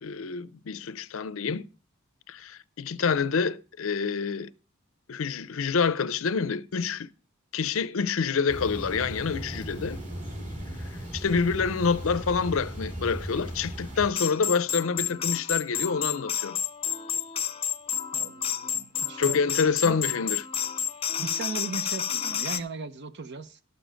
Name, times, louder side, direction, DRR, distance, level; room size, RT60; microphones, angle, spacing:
voice 1, 0.0-1.7 2.3-4.5 5.1-7.1 7.5-10.0 11.1-16.6 19.2-20.5, left 5 dB, 65° left, 0.6 m, -27 dB
sound 1, 8.5-14.1, equal, 35° right, 3.1 m, -37 dB
sound 2, 14.1-22.6, left 8 dB, 25° left, 0.6 m, -30 dB
voice 2, 18.1-19.4 19.8-20.0 21.2-23.6, right 4 dB, 55° right, 0.8 m, -37 dB
12.5 x 6.9 x 5.0 m
head